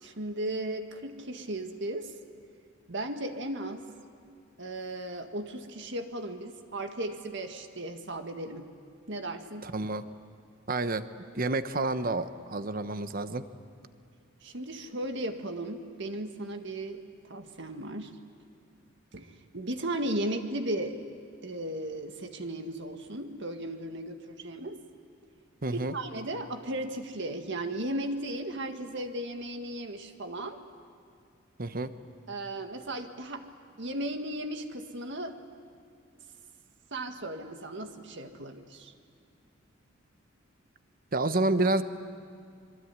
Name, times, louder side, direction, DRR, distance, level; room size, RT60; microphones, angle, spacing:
voice 1, 0.0-2.1 2.9-3.9 4.6-8.7 9.1-9.7 14.4-17.0 17.3-18.2 19.1-21.0 21.4-24.8 25.7-30.6 32.3-33.5 33.8-35.4 36.9-38.9, right 1 dB, 60° right, 6 dB, 1.9 m, -36 dB
voice 2, 9.6-10.0 10.7-11.0 11.3-13.4 25.6-25.9 31.6-31.9 41.1-41.8, right 2 dB, 45° right, 11 dB, 1.1 m, -29 dB
26.5 x 23.5 x 9.7 m, 2.4 s
head